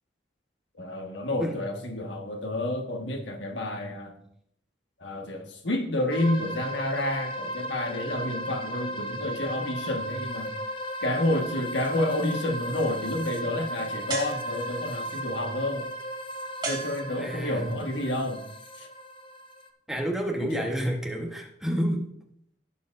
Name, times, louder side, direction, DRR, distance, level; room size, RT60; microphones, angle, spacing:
voice 1, 0.7-4.3 5.0-10.5 11.0-15.9 16.6-18.4 18.8-18.9 20.4-20.7, left 1 dB, 80° left, 4 dB, 1.5 m, -30 dB
voice 2, 1.4-1.7 17.2-17.8 19.9-22.1, equal, ahead, 1 dB, 1.1 m, -29 dB
sound 1, 6.1-19.7, equal, 30° left, 0.7 m, -36 dB
sound 2, 14.1-15.0 16.6-17.6, right 3 dB, 25° right, 2.8 m, -35 dB
17.0 x 7.1 x 2.6 m, 0.71 s
head